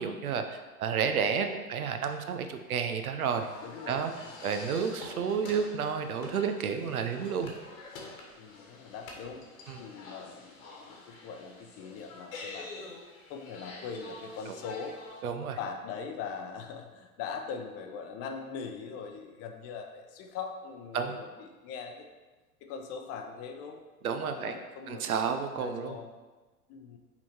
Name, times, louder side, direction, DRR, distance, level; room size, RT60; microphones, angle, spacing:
voice 1, 0.0-3.5 3.9-4.1 4.4-7.5 9.7-9.8 14.5-14.6 15.2-15.6 20.9-21.1 24.0-24.6 24.9-26.0, right 6 dB, 70° right, 7 dB, 0.7 m, -31 dB
sound 1, 3.2-15.2, left 3 dB, 60° left, 1.5 m, -47 dB
voice 2, 3.6-4.8 8.4-9.5 9.8-13.0 13.3-15.0 15.4-22.0 22.6-23.8 24.2-26.1 26.7-27.0, left 6 dB, 35° left, 4 dB, 0.7 m, -41 dB
5.8 x 3.9 x 4.5 m, 1.2 s
figure-of-eight pair, 90°, 44 cm